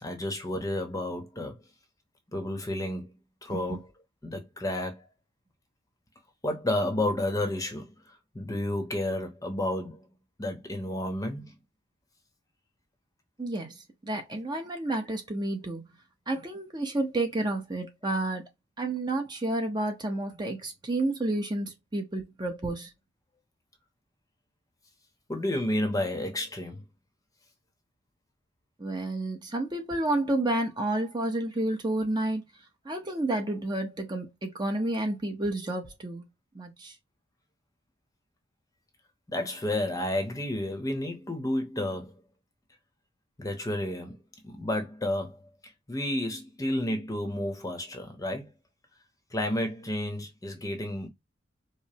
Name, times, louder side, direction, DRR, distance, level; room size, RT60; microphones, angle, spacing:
voice 1, 0.0-1.5 2.3-3.1 3.4-3.8 4.2-5.1 6.4-7.9 8.3-10.1 10.4-11.5 25.3-26.8 39.3-42.2 43.4-44.2 44.4-45.4 45.9-48.5 49.3-51.1, left 1 dB, 20° left, 0.8 m, -31 dB
voice 2, 3.5-3.8 13.4-15.9 16.3-18.4 18.8-22.9 28.8-32.4 32.8-36.3 36.5-36.9, right 2 dB, 20° right, 0.7 m, -30 dB
4.9 x 2.0 x 2.7 m
head